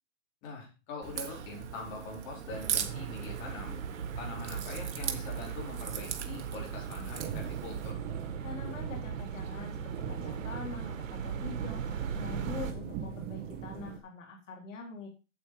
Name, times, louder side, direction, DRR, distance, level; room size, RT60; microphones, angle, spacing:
voice 1, 0.4-3.8 4.2-8.0, left 3 dB, 35° left, -1 dB, 4.5 m, -43 dB
Crack, 1.0-7.9, right 9 dB, 65° right, 1.6 m, -39 dB
sound 1, 2.5-12.7, right 7 dB, 85° right, 1.7 m, -38 dB
sound 2, 7.2-14.0, right 8 dB, 25° right, 1.5 m, -42 dB
voice 2, 8.4-15.1, left 4 dB, 75° left, 1 dB, 3.6 m, -44 dB
8.2 x 8.0 x 4.9 m, 0.30 s
hypercardioid pair, 155°, 38 cm